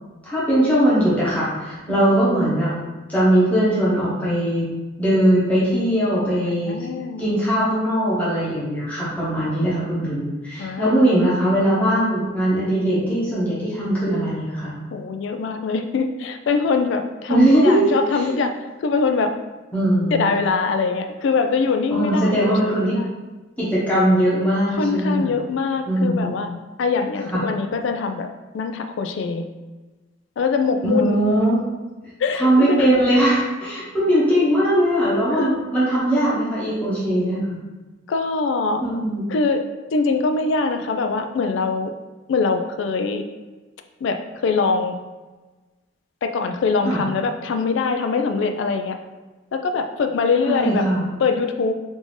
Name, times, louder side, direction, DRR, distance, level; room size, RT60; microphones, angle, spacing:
voice 1, 0.2-2.7 3.1-4.7 5.0-6.8 7.2-14.7 17.3-18.3 19.7-20.3 21.9-22.9 23.6-25.3 25.9-26.3 27.3-27.4 30.8-31.6 32.3-37.6 38.8-39.2 46.8-47.0 50.4-51.1, right 1 dB, 5° left, -10 dB, 1.0 m, -20 dB
voice 2, 6.7-7.2 10.6-11.2 14.9-18.5 18.8-19.3 20.1-23.1 24.8-26.5 26.8-28.3 28.5-29.5 30.4-31.2 32.2-32.9 35.4-35.6 36.2-36.5 38.1-38.8 39.3-39.6 39.9-41.9 42.3-43.2 44.0-45.0 46.2-49.0 49.5-50.9 51.2-51.7, left 4 dB, 65° left, 7 dB, 0.3 m, -23 dB
3.5 x 2.6 x 3.2 m, 1.2 s
head